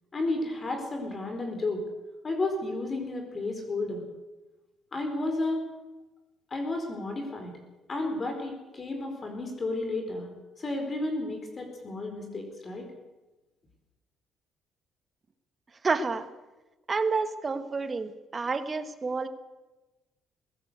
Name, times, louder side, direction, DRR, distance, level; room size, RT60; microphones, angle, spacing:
voice 1, 0.1-1.8 2.2-4.0 4.9-5.6 6.5-7.5 7.9-10.3 10.6-12.9, left 2 dB, 30° left, 4 dB, 4.5 m, -32 dB
voice 2, 15.8-16.3 16.9-19.3, right 4 dB, 30° right, 10 dB, 1.5 m, -29 dB
21.5 x 16.5 x 8.2 m, 1.1 s
cardioid pair, 105°, 0 cm